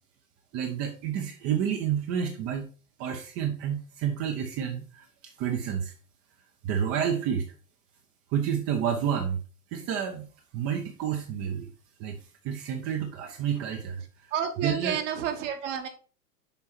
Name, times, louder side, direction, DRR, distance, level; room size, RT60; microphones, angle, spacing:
voice 1, 0.5-2.6 3.0-5.9 6.6-7.4 8.3-9.4 9.7-10.3 10.5-11.7 12.0-12.2 12.4-14.3 14.6-15.0, right 8 dB, 30° right, 4 dB, 0.9 m, -29 dB
voice 2, 14.3-15.9, right 8 dB, 50° right, 5 dB, 1.6 m, -30 dB
7.0 x 4.7 x 4.2 m, 0.38 s
figure-of-eight pair, 95°, 48 cm